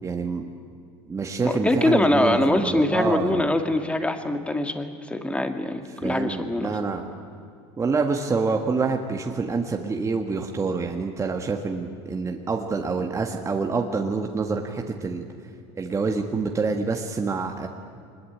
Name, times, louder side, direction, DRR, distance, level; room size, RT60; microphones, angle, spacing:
voice 1, 0.0-0.5 1.1-3.5 6.0-7.0 7.8-15.2 15.8-17.7, right 4 dB, 20° right, 3 dB, 1.7 m, -27 dB
voice 2, 1.4-6.7, left 1 dB, 10° left, 7 dB, 2.1 m, -23 dB
23.5 x 20.5 x 8.7 m, 2.4 s
supercardioid pair, 105°, 14 cm